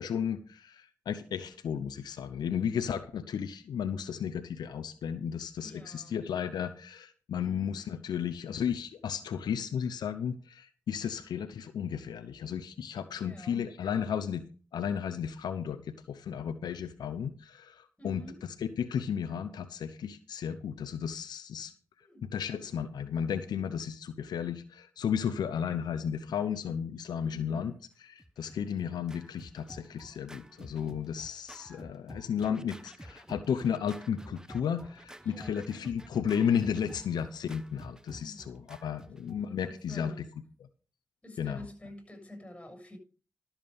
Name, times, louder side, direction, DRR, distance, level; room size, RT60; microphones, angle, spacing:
voice 1, 0.0-14.4 14.7-18.2 18.6-21.7 22.2-27.7 28.0-40.3 41.4-41.7, left 8 dB, 80° left, 0.7 m, -34 dB
voice 2, 5.6-6.3 6.5-6.6 7.4-7.8 13.2-13.7 18.0-18.5 22.0-22.2 27.2-27.8 35.2-35.7 38.0-38.6 39.2-40.3 41.2-43.0, left 1 dB, 15° left, 7.0 m, -49 dB
Scratching (performance technique), 28.2-40.3, right 1 dB, 10° right, 1.1 m, -50 dB
12.5 x 7.3 x 5.3 m
supercardioid pair, 40°, 7 cm